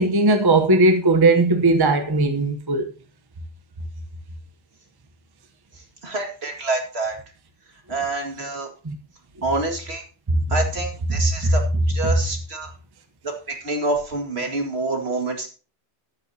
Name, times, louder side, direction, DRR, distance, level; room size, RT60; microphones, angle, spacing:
voice 1, 0.0-2.8 8.8-9.0 10.3-10.4 11.4-11.5, right 2 dB, 20° right, 0.9 m, -18 dB
voice 2, 5.7-7.2 7.9-8.7 9.4-10.0 10.5-12.7 13.2-15.5, right 2 dB, 60° right, 2.4 m, -27 dB
13.0 x 10.5 x 2.8 m
omnidirectional pair, 1.2 m